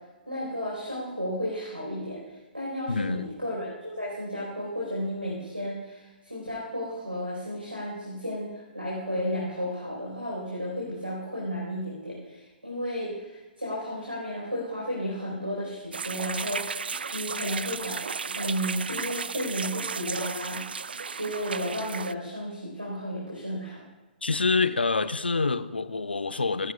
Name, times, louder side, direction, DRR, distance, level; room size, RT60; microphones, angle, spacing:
voice 1, 0.3-18.0 18.2-20.8 21.1-23.8, equal, 90° right, -4 dB, 4.6 m, -33 dB
voice 2, 2.9-3.3 24.2-26.7, left 4 dB, 75° left, 13 dB, 0.7 m, -26 dB
sound 1, 15.9-22.1, right 5 dB, 65° right, 0.4 m, -34 dB
26.5 x 12.0 x 2.4 m, 1.2 s
figure-of-eight pair, 120°, 6 cm